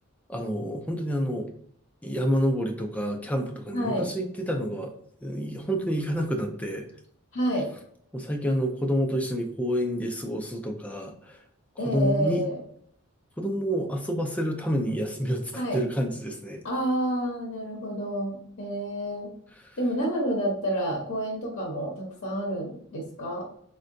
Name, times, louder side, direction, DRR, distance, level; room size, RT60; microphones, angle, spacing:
voice 1, 0.3-1.5 2.0-4.9 5.2-6.8 8.1-11.4 11.8-12.4 13.4-16.6, equal, 5° left, 3 dB, 0.4 m, -28 dB
voice 2, 3.7-4.1 7.3-7.7 11.8-12.6 15.5-15.8 16.6-19.3 19.8-23.4, equal, 55° left, -2 dB, 0.7 m, -29 dB
3.6 x 2.2 x 2.5 m, 0.64 s
head